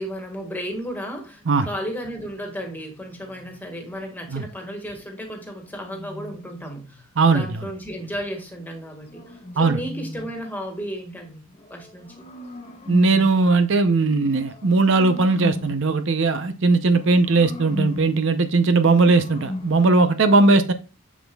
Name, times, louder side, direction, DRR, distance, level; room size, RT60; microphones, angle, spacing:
voice 1, 0.0-11.5 11.7-12.3, equal, 10° left, 1.7 m, -34 dB
sound 1, 1.3-3.7 5.3-7.1 8.5-10.5 11.5-13.5 14.2-15.9 16.8-18.2 18.7-20.0, left 1 dB, 30° left, 1.3 m, -37 dB
voice 2, 12.9-20.7, right 3 dB, 60° right, 0.7 m, -18 dB
7.3 x 7.2 x 2.3 m
head